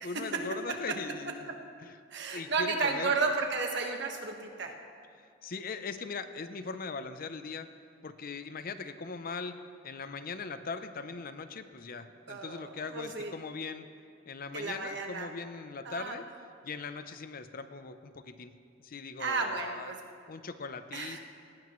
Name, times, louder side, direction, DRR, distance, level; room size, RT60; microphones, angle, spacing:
voice 1, 0.0-1.5 1.8-2.0 2.3-3.1 5.4-7.7 8.0-9.6 9.8-13.9 14.3-16.2 16.6-18.5 18.8-19.9 20.3-21.2, left 4 dB, 50° left, 10 dB, 0.6 m, -40 dB
voice 2, 2.1-4.7 12.3-13.3 14.5-15.3 15.8-16.2 19.2-20.0 20.9-21.2, right 4 dB, 65° right, 3 dB, 1.4 m, -33 dB
19.0 x 16.5 x 3.1 m, 2.3 s
head